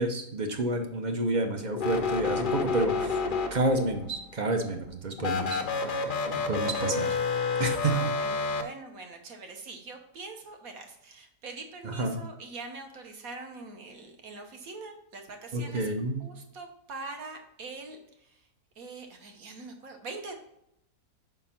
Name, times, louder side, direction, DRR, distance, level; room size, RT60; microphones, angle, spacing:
voice 1, 0.0-3.2 3.5-5.6 5.9-7.2 7.6-8.1 11.8-12.2 15.5-16.2, right 2 dB, 40° right, 5 dB, 0.6 m, -29 dB
sound 1, 1.8-3.9 5.2-8.6, left 4 dB, 50° left, 0.6 m, -29 dB
voice 2, 7.8-15.9 16.2-18.4 18.8-20.3, right 3 dB, 60° right, 4 dB, 1.4 m, -43 dB
5.7 x 5.2 x 5.7 m, 0.81 s
omnidirectional pair, 1.7 m